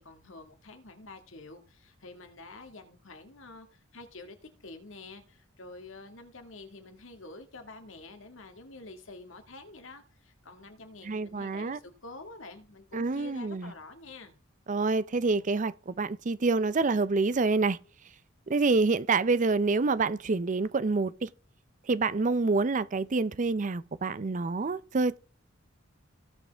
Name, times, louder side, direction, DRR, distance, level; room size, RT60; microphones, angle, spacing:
voice 1, 0.0-14.4, left 3 dB, 75° left, 1.8 m, -48 dB
voice 2, 11.0-11.8 12.9-13.7 14.7-17.8 18.5-21.3 21.9-25.2, right 3 dB, 40° right, 0.5 m, -27 dB
18.0 x 6.2 x 3.4 m
head